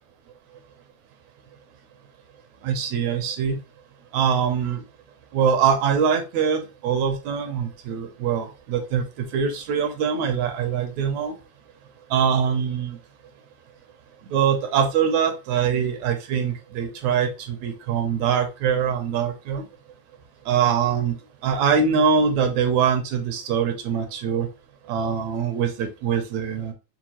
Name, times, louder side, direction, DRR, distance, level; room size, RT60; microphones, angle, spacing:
voice 1, 2.6-3.6 4.1-4.8 5.3-9.0 9.3-11.3 12.1-13.0 14.3-19.6 20.5-21.2 21.4-24.5 24.9-26.7, right 7 dB, 75° right, 5 dB, 1.9 m, -23 dB
6.1 x 2.2 x 2.9 m, 0.28 s
omnidirectional pair, 3.4 m